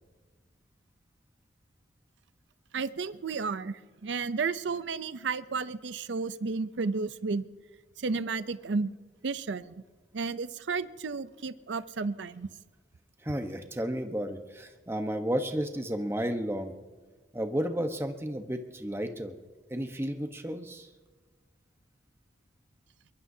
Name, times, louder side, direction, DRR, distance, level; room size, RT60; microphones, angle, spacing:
voice 1, 2.7-7.5 8.0-9.0 9.2-9.8 10.1-12.5, right 4 dB, 70° right, 14 dB, 0.6 m, -32 dB
voice 2, 13.2-16.7 17.3-19.4 19.7-20.9, equal, 15° right, 6 dB, 1.0 m, -32 dB
22.5 x 21.5 x 2.8 m, 1.4 s
head